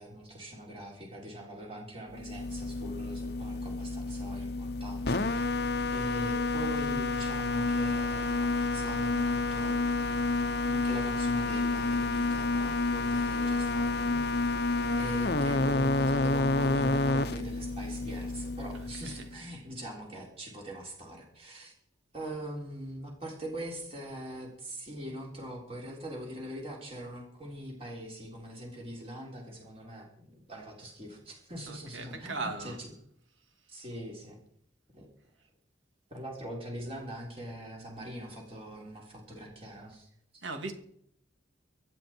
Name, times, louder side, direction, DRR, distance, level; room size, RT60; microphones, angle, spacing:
voice 1, 0.0-5.4 5.9-9.8 10.6-14.2 14.9-21.7 22.1-32.9 33.7-34.4 34.9-35.1 36.1-40.1, right 1 dB, 30° right, 3.7 m, -42 dB
sound 1, 2.1-19.4, left 3 dB, 55° left, 0.8 m, -29 dB
voice 2, 18.7-19.2 31.7-32.8 40.4-40.7, right 3 dB, 85° right, 2.6 m, -38 dB
25.0 x 9.1 x 4.5 m
head